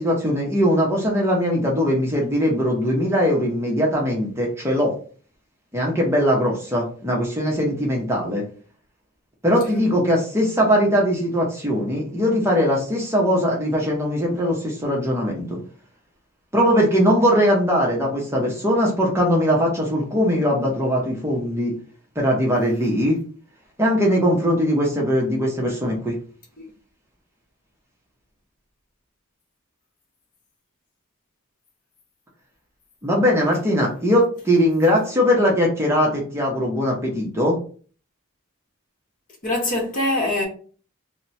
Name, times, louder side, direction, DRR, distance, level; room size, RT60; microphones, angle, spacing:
voice 1, 0.0-4.9 5.7-8.4 9.4-15.6 16.5-21.7 22.2-23.2 23.8-26.2 33.0-37.6, equal, 10° right, 0.7 m, -20 dB
voice 2, 39.4-40.5, left 1 dB, 40° left, 0.9 m, -23 dB
2.9 x 2.1 x 4.1 m
head